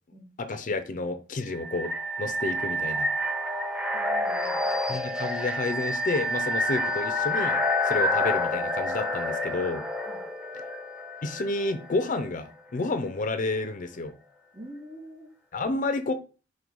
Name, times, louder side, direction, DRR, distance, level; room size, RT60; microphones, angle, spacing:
voice 1, 0.4-3.1 4.9-9.8 11.2-14.1 15.5-16.1, left 3 dB, 45° left, 0.5 m, -30 dB
sound 1, 1.5-12.3, left 1 dB, 5° right, 0.6 m, -28 dB
voice 2, 3.9-4.7 8.0-8.1 10.0-10.2 14.5-15.3, equal, 35° right, 1.9 m, -45 dB
5.2 x 2.2 x 4.5 m
head